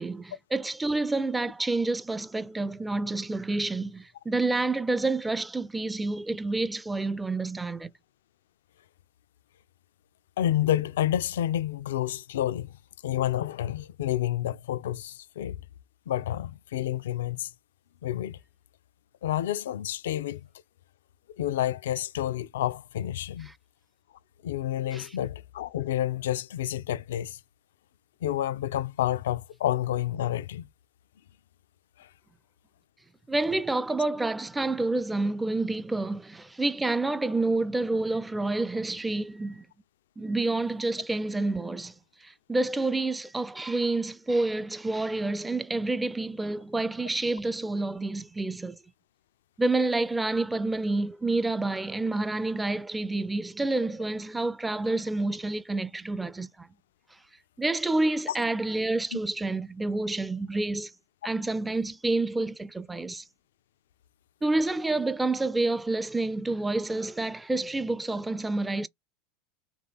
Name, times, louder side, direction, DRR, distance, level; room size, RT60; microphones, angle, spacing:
voice 1, 0.0-7.9 24.9-25.1 33.3-39.6 40.2-41.9 42.2-48.8 49.6-56.7 57.6-60.9 61.2-63.2 64.4-68.9, right 2 dB, 10° right, 0.4 m, -28 dB
voice 2, 10.4-12.8 13.0-15.6 16.1-17.5 18.0-18.4 19.2-20.5 21.4-23.5 24.4-27.4 28.2-30.7 32.0-32.1, left 12 dB, 70° left, 0.3 m, -29 dB
3.3 x 3.0 x 3.5 m
hypercardioid pair, 85°, 0 cm